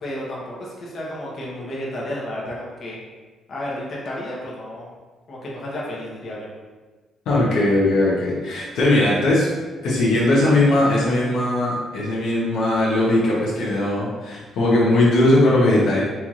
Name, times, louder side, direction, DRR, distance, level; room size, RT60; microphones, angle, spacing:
voice 1, 0.0-3.0 3.5-4.9 5.3-6.5, left 1 dB, 50° left, -5 dB, 1.0 m, -32 dB
voice 2, 7.3-9.5 9.8-16.0, left 1 dB, 80° left, -6 dB, 0.9 m, -19 dB
4.4 x 2.9 x 2.4 m, 1.3 s
cardioid pair, 90°, 0 cm